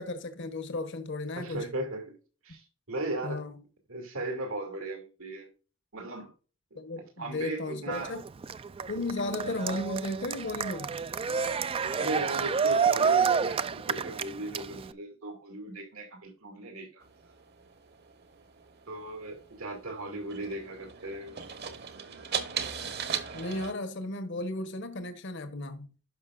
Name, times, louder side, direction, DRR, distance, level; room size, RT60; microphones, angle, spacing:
voice 1, 0.0-1.7 3.2-3.6 6.8-8.2 8.9-11.0 23.3-25.9, left 2 dB, 60° left, 1.1 m, -35 dB
voice 2, 1.4-2.2 2.4-3.4 3.9-5.5 5.9-6.3 6.9-8.2 11.9-17.0 18.9-21.4, right 2 dB, 90° right, 2.7 m, -37 dB
Cheering, 7.9-14.9, right 6 dB, 25° right, 0.3 m, -29 dB
sound 1, 17.0-23.7, right 7 dB, 50° right, 1.2 m, -39 dB
11.5 x 5.6 x 2.5 m
head